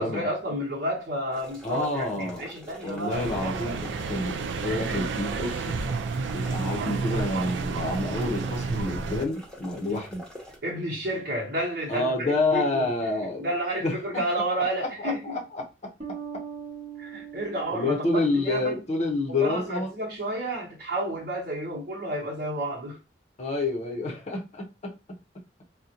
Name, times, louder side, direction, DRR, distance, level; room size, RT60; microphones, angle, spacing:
voice 1, 0.0-3.7 10.6-12.1 12.5-12.9 13.4-15.4 17.0-18.8 19.3-23.0, right 1 dB, 65° right, 0.9 m, -31 dB
sound 1, 1.3-10.6, left 1 dB, 5° left, 0.8 m, -45 dB
voice 2, 1.6-2.4 2.8-5.8 6.3-10.2 11.9-13.4 13.8-14.2 14.8-15.7 17.7-19.9 23.4-25.0, left 2 dB, 40° left, 0.7 m, -28 dB
sound 2, 3.1-9.2, right 4 dB, 85° right, 0.4 m, -30 dB
sound 3, 16.0-19.3, right 8 dB, 35° right, 0.8 m, -41 dB
3.7 x 2.1 x 2.8 m
head